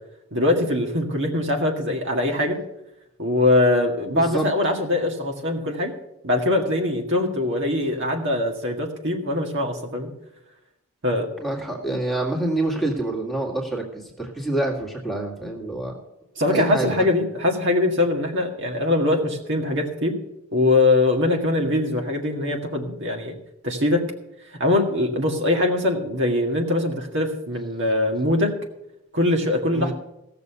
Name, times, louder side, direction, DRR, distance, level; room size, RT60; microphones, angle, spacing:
voice 1, 0.3-2.6 3.2-5.9 6.2-10.1 11.0-11.3 16.4-20.1 20.5-23.3 23.6-24.0 24.6-28.5 29.1-29.9, left 2 dB, 55° right, 1 dB, 1.9 m, -22 dB
voice 2, 4.1-4.5 11.4-16.0 16.5-17.0 29.7-29.9, right 2 dB, ahead, -1 dB, 2.0 m, -27 dB
16.5 x 6.8 x 6.7 m, 0.85 s
head